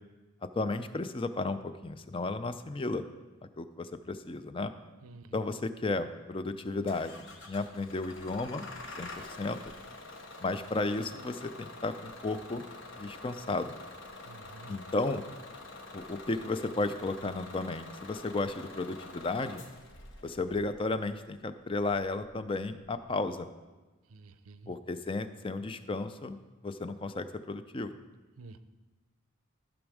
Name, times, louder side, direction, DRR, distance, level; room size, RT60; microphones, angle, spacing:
voice 1, 0.6-3.0 3.6-4.7 5.3-8.7 9.0-9.7 10.4-12.6 13.0-13.8 14.7-15.2 15.9-19.6 20.2-23.5 24.7-26.4 26.6-27.9, left 2 dB, 25° left, 11 dB, 0.4 m, -34 dB
Bus / Engine starting, 6.9-23.1, left 2 dB, 60° left, 1.2 m, -47 dB
voice 2, 14.3-14.8 24.1-24.7 28.4-28.6, right 3 dB, 85° right, 12 dB, 0.6 m, -50 dB
14.0 x 6.2 x 4.9 m, 1.2 s
head